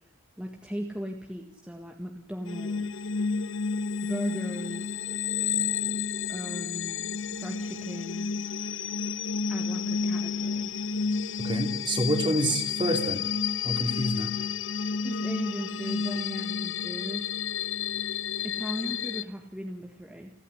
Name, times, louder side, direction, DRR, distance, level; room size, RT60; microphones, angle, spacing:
voice 1, 0.4-3.1 4.1-5.1 6.3-7.1 7.3-8.3 9.5-10.7 15.0-17.3 18.4-20.3, equal, 5° right, 1 dB, 1.7 m, -37 dB
sound 1, 2.5-19.2, left 6 dB, 65° left, 0.8 m, -31 dB
voice 2, 11.4-13.2 13.6-14.3, right 1 dB, 25° right, 5 dB, 2.8 m, -28 dB
29.0 x 10.0 x 10.0 m, 0.78 s
head